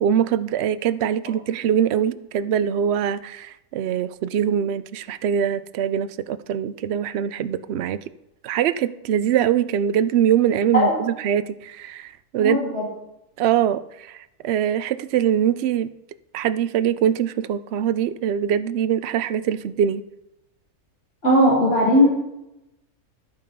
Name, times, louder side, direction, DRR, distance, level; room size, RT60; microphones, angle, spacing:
voice 1, 0.0-8.0 8.4-12.6 13.4-15.9 16.3-20.0, right 9 dB, 65° right, 14 dB, 0.6 m, -23 dB
voice 2, 12.4-12.9 21.2-22.1, equal, 45° left, -10 dB, 4.5 m, -18 dB
12.0 x 8.5 x 5.3 m, 0.90 s
omnidirectional pair, 1.7 m